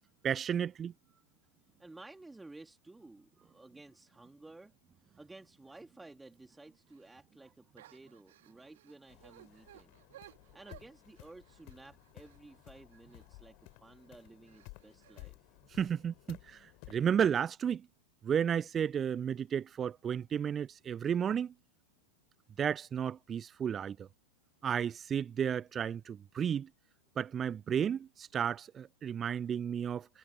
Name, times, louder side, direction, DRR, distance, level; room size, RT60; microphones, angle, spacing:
voice 1, 0.2-0.9 15.7-17.9 18.2-21.5 22.6-24.1 24.6-26.7 27.2-30.1, right 8 dB, 25° right, 0.4 m, -33 dB
voice 2, 1.8-4.7 5.2-9.9 10.5-15.6, right 2 dB, 5° right, 2.5 m, -54 dB
sound 1, 6.9-7.2 7.8-13.4 13.9-14.1 14.5-15.3, right 14 dB, 55° right, 2.4 m, -59 dB
sound 2, 9.1-17.0, left 32 dB, 45° left, 3.3 m, -56 dB
figure-of-eight pair, 90°, 0 cm